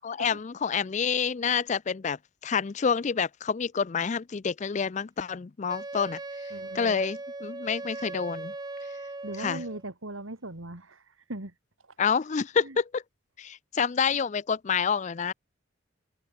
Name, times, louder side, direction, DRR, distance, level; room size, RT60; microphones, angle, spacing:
voice 1, 0.0-2.2 2.4-6.2 6.7-8.5 9.4-9.6 12.0-13.0 13.4-15.3, left 6 dB, 35° left, 0.4 m, -28 dB
Wind instrument woodwind instrument, 5.7-9.8, right 2 dB, 20° right, 0.6 m, -39 dB
voice 2, 6.5-7.0 9.2-11.5 12.6-12.8, right 2 dB, 90° right, 2.8 m, -39 dB
open air
head